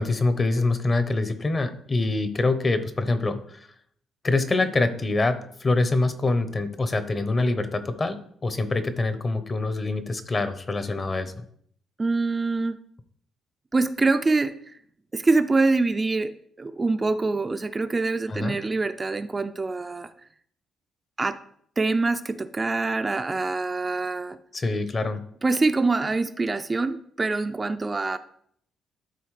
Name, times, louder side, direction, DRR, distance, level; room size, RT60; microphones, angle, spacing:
voice 1, 0.0-3.6 4.2-11.4 18.3-18.6 24.5-25.2, left 2 dB, 35° left, 10 dB, 0.8 m, -25 dB
voice 2, 12.0-12.8 13.7-14.5 15.1-16.3 16.6-20.1 21.2-21.4 21.8-24.4 25.4-28.2, right 3 dB, 25° right, 9 dB, 0.4 m, -24 dB
12.0 x 4.1 x 3.2 m, 0.65 s
cardioid pair, 90°, 0 cm